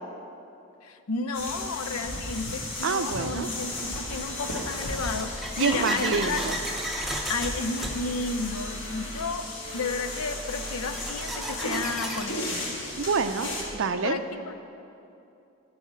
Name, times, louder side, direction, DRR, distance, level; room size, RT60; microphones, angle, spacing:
voice 1, 0.8-6.4 7.3-9.5 9.7-12.8 14.0-14.5, left 3 dB, 80° left, 9 dB, 0.5 m, -32 dB
sound 1, 1.3-13.6, left 1 dB, 55° left, 1.6 m, -35 dB
sound 2, 1.9-2.0 2.8-12.2, right 1 dB, ahead, 0.7 m, -36 dB
voice 2, 2.8-3.5 5.6-6.6 13.0-14.2, right 5 dB, 55° right, 10 dB, 0.4 m, -27 dB
12.0 x 4.9 x 7.3 m, 2.8 s
head